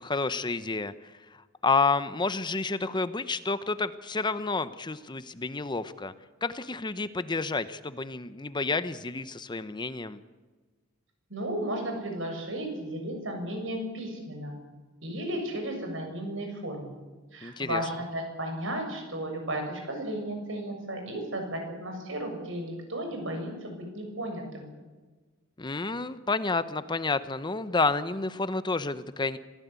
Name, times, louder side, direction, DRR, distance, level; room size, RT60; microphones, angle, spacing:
voice 1, 0.0-6.1 6.4-10.2 17.4-17.8 25.6-29.4, left 3 dB, 20° left, 13 dB, 0.8 m, -30 dB
voice 2, 11.3-14.6 15.0-17.0 17.3-24.7, right 1 dB, 70° right, 4 dB, 7.0 m, -34 dB
25.5 x 16.5 x 8.3 m, 1.3 s
head